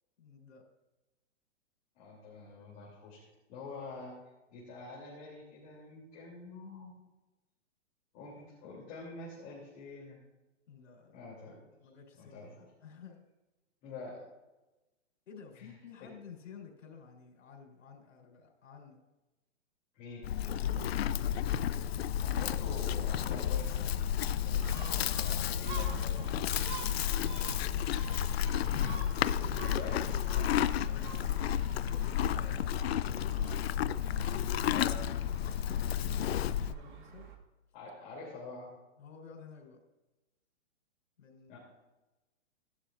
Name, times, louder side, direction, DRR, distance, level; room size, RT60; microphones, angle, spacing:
voice 1, 0.2-0.6 10.7-11.2 11.8-13.3 15.3-19.1 20.5-20.9 24.6-25.1 25.7-28.1 29.2-29.7 30.0-33.9 35.6-37.3 39.0-39.8 41.2-41.5, left 6 dB, 85° left, 2 dB, 3.9 m, -53 dB
voice 2, 1.9-3.2 3.5-4.2 4.5-6.9 8.1-10.2 11.1-11.7 12.2-12.5 13.8-14.2 15.5-15.7 16.0-16.1 19.9-20.7 22.2-26.1 26.5-26.7 29.6-30.0 34.7-35.0 37.7-38.7 41.5-41.6, left 3 dB, 25° left, -6 dB, 3.1 m, -46 dB
Livestock farm animals working animals, 20.2-36.8, left 10 dB, 55° left, 0.5 m, -32 dB
Gull seagull, 24.5-37.4, right 7 dB, 40° right, 1.6 m, -48 dB
17.5 x 11.5 x 2.5 m, 1.1 s
hypercardioid pair, 165°, 37 cm